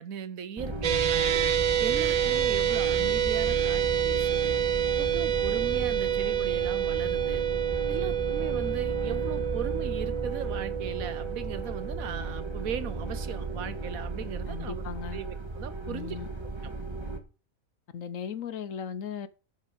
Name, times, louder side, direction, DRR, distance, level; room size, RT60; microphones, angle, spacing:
voice 1, 0.0-1.4 1.8-4.6 5.0-7.4 7.9-14.8 15.1-16.2, right 8 dB, 90° right, 1.4 m, -38 dB
sound 1, 0.6-17.2, right 2 dB, 20° right, 1.7 m, -35 dB
sound 2, 0.8-13.2, right 10 dB, 60° right, 0.4 m, -28 dB
voice 2, 14.5-15.2 15.8-16.3 17.9-19.3, left 7 dB, 70° left, 1.3 m, -37 dB
9.1 x 5.8 x 7.9 m
omnidirectional pair, 1.4 m